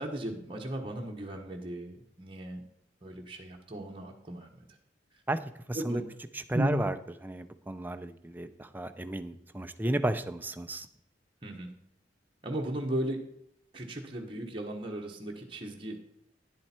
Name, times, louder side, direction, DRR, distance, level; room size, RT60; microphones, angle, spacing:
voice 1, 0.0-2.6 3.0-4.5 5.7-6.0 6.5-6.7 11.4-11.7 12.4-13.2 13.7-16.0, right 1 dB, 30° right, 0 dB, 1.1 m, -36 dB
voice 2, 5.7-6.0 6.3-6.9 7.2-10.9, right 1 dB, 10° right, 9 dB, 0.5 m, -33 dB
10.0 x 7.7 x 4.4 m, 0.77 s
head